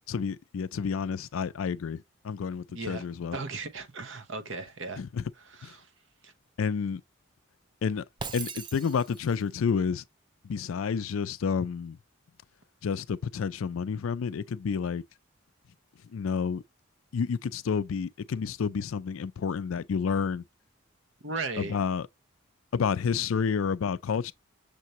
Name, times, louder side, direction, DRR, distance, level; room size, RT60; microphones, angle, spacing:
voice 1, 0.1-3.4 5.0-5.2 5.6-5.7 6.6-7.0 7.8-8.0 8.3-10.0 10.4-12.0 12.8-15.0 16.1-16.6 17.1-20.4 21.6-22.1 22.7-24.3, left 6 dB, 75° left, 0.4 m, -30 dB
voice 2, 2.7-3.1 3.3-5.0 5.4-5.9 6.2-6.3 21.2-21.8, right 3 dB, 65° right, 0.9 m, -36 dB
Shatter, 8.2-9.4, right 5 dB, 20° right, 0.4 m, -39 dB
6.7 x 2.6 x 3.0 m
head